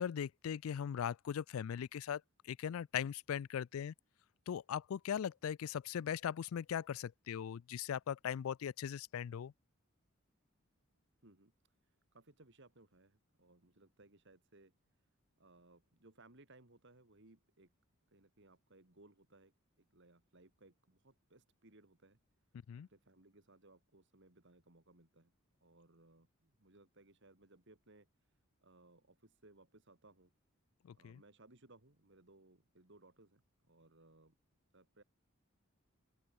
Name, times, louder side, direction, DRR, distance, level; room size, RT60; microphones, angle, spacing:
voice 1, 0.0-3.9 4.5-9.5 22.7-22.9 30.8-31.2, left 8 dB, 75° left, 0.3 m, -39 dB
voice 2, 11.2-11.5 12.1-14.7 15.4-17.7 18.1-22.2 22.9-25.3 25.6-28.1 28.6-30.3 30.9-34.4 34.7-35.0, right 2 dB, 55° right, 2.5 m, -64 dB
open air
head